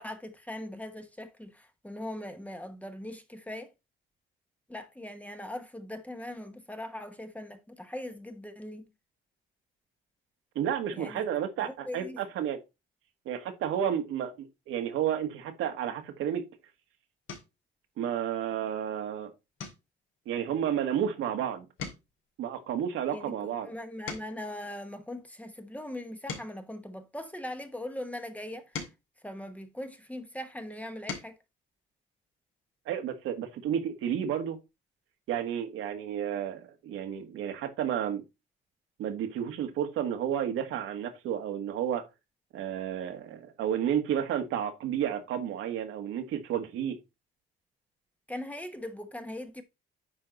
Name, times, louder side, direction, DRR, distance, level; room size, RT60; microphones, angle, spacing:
voice 1, 0.0-3.7 4.7-8.9 10.9-11.3 11.6-12.2 23.1-28.8 29.2-31.4 48.3-49.6, left 1 dB, 5° left, 1.1 m, -40 dB
voice 2, 10.5-12.6 13.2-16.4 18.0-19.3 20.2-21.6 22.4-23.7 32.8-34.6 35.3-38.2 39.0-42.1 42.5-47.0, right 9 dB, 80° right, 1.7 m, -31 dB
sound 1, 16.4-16.7 17.2-17.7 18.2-18.5 18.8-19.0 19.5-21.4 21.7-24.6 25.2-27.7 28.3-30.2 30.7-31.4 32.8-32.9 33.2-33.4, left 5 dB, 70° left, 2.7 m, -45 dB
9.7 x 3.8 x 3.9 m
cardioid pair, 105°, 21 cm